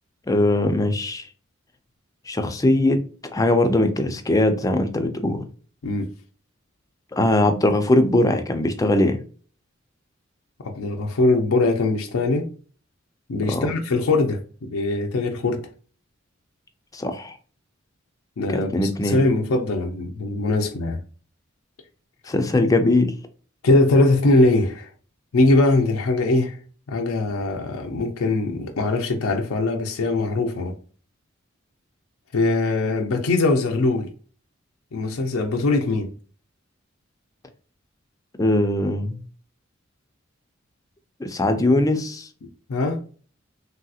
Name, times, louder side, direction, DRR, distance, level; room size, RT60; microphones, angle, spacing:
voice 1, 0.3-1.3 2.3-3.0 3.3-5.4 7.1-9.2 13.5-13.7 16.9-17.3 18.5-19.2 22.3-23.1 38.4-39.2 41.2-42.3, left 1 dB, 15° left, 0.4 m, -20 dB
voice 2, 10.6-12.5 13.3-15.6 18.4-21.0 23.6-24.9 25.3-26.6 26.9-30.7 32.3-34.1 34.9-36.1 42.7-43.0, left 2 dB, 90° left, 0.5 m, -21 dB
3.3 x 2.7 x 2.4 m
head